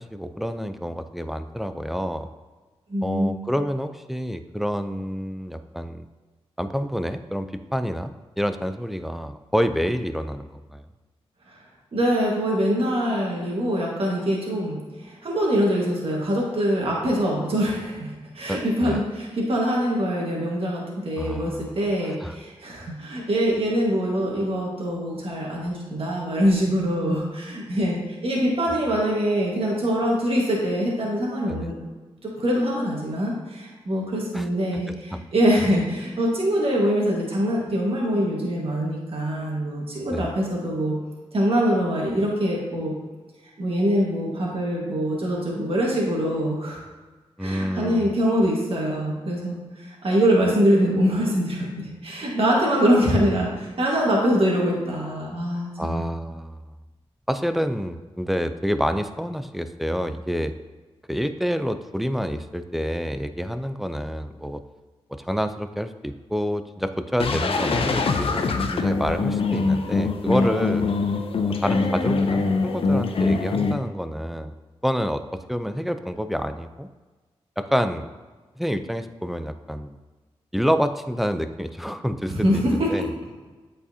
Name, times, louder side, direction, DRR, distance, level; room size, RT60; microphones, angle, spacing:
voice 1, 0.0-2.3 3.0-6.1 6.6-10.8 18.5-19.0 21.2-21.8 22.0-22.4 31.5-31.7 34.3-34.5 34.7-35.2 40.1-40.3 47.4-48.1 55.8-56.6 57.3-60.5 61.1-64.6 65.1-68.4 68.7-70.9 71.5-74.5 74.8-76.9 77.6-78.1 78.6-80.0 80.5-83.1, equal, ahead, 10 dB, 0.5 m, -28 dB
voice 2, 2.9-3.4 11.5-11.6 11.9-14.7 15.0-31.7 32.2-41.0 41.3-42.9 43.6-46.8 47.4-56.0 82.3-82.9, equal, 60° right, -3 dB, 1.6 m, -24 dB
sound 1, 67.2-73.7, left 3 dB, 60° left, 0.6 m, -23 dB
8.3 x 4.2 x 2.8 m, 1.3 s
cardioid pair, 45°, 11 cm